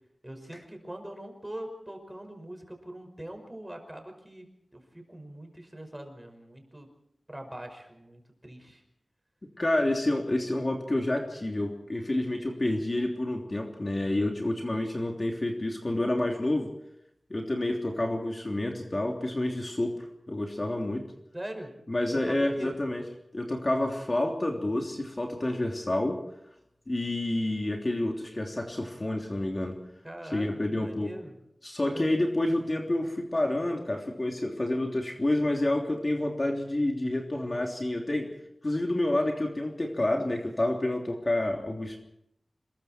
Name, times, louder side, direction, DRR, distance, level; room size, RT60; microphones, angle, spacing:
voice 1, 0.2-4.5 4.7-6.9 7.3-8.8 21.3-21.7 22.1-22.8 30.0-31.4 31.8-32.2, right 1 dB, 15° right, 5 dB, 5.5 m, -42 dB
voice 2, 9.6-16.7 17.3-19.9 20.3-21.0 21.9-23.0 23.3-26.2 26.9-29.8 30.3-31.1 31.6-38.3 38.6-42.0, left 1 dB, 35° left, 1 dB, 3.1 m, -29 dB
27.5 x 21.5 x 4.5 m, 0.77 s
wide cardioid pair, 75°, 0 cm